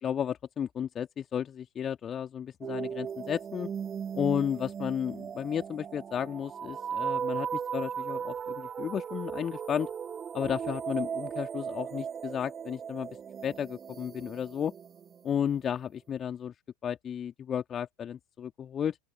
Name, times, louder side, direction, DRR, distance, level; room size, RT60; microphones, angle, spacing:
voice 1, 0.0-3.7 4.1-9.9 10.3-13.1 13.4-14.7 15.2-16.5 16.8-19.0, left 8 dB, 25° left, 2.3 m, -33 dB
sound 1, 2.6-15.3, right 7 dB, 20° right, 1.0 m, -37 dB
open air
figure-of-eight pair, 90°, 0 cm